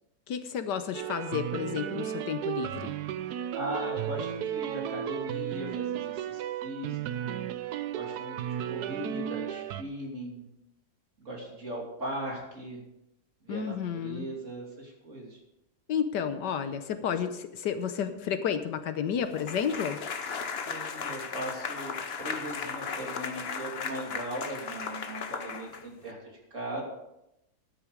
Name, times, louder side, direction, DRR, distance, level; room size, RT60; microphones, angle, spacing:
voice 1, 0.3-2.9 13.5-14.3 15.9-20.0, left 8 dB, 75° left, 10 dB, 1.4 m, -31 dB
sound 1, 0.9-9.8, right 10 dB, 70° right, 1.1 m, -34 dB
voice 2, 3.5-7.5 7.9-10.5 11.2-12.8 13.4-15.4 20.6-26.8, right 1 dB, 40° right, -1 dB, 3.4 m, -39 dB
sound 2, 19.3-26.1, left 5 dB, 45° left, 0.9 m, -36 dB
13.0 x 10.5 x 5.0 m, 0.85 s
omnidirectional pair, 2.0 m